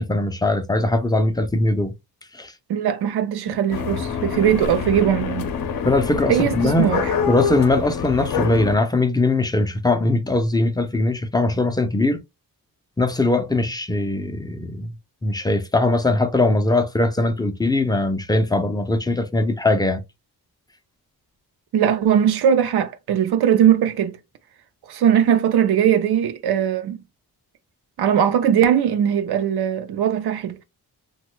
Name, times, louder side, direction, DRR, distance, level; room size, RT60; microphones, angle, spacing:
voice 1, 0.0-1.9 2.4-2.5 5.8-7.0 7.3-12.2 13.0-14.9 15.2-20.0, left 2 dB, 10° left, 0.3 m, -20 dB
voice 2, 2.7-5.5 6.3-7.1 21.7-24.2 24.9-27.0 28.0-30.6, right 9 dB, 90° right, 0.5 m, -20 dB
sound 1, 3.7-8.8, left 6 dB, 65° left, 0.6 m, -26 dB
3.0 x 2.2 x 3.0 m
wide cardioid pair, 125°, 37 cm